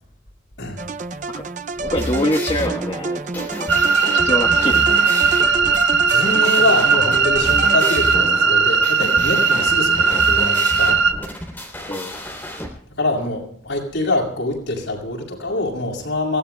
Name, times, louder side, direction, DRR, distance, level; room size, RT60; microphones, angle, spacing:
sound 1, 0.8-8.5, right 3 dB, 40° right, 0.5 m, -30 dB
sound 2, 1.7-12.7, left 1 dB, 10° left, 3.3 m, -31 dB
voice 1, 1.8-3.8 4.1-4.8 5.1-5.2 11.9-12.1, left 1 dB, 30° left, 0 dB, 1.4 m, -25 dB
sound 3, 3.7-11.1, right 5 dB, 80° right, 1.4 m, -17 dB
voice 2, 6.1-11.0 13.0-16.4, left 2 dB, 85° left, 0 dB, 6.5 m, -24 dB
28.5 x 17.5 x 2.3 m, 0.67 s
head